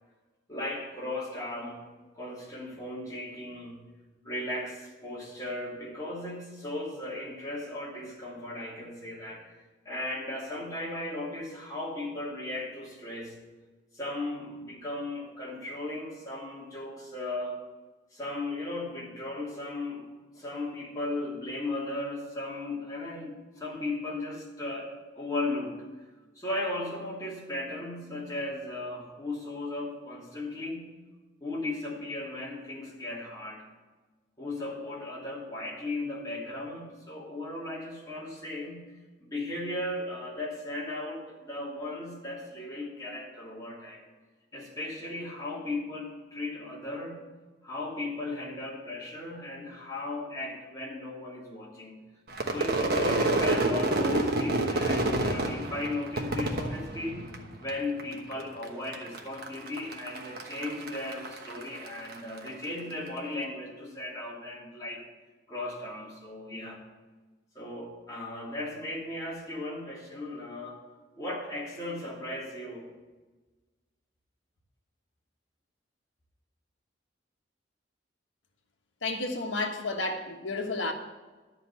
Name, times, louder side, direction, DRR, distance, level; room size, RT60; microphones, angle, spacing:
voice 1, 0.5-1.8 2.1-3.8 4.2-13.3 13.9-17.6 18.1-20.1 20.3-25.8 26.3-30.9 31.4-33.7 34.4-38.8 39.2-44.0 44.5-47.2 47.6-52.0 52.4-57.3 57.6-65.1 65.5-66.8 67.5-70.8 71.2-72.8, left 2 dB, 20° left, 2.7 m, -36 dB
Crowd / Fireworks, 52.3-57.7 58.0-58.6 58.9-62.5, right 2 dB, 55° right, 1.2 m, -28 dB
voice 2, 79.0-80.9, left 2 dB, 75° left, 1.3 m, -31 dB
12.0 x 5.4 x 8.1 m
head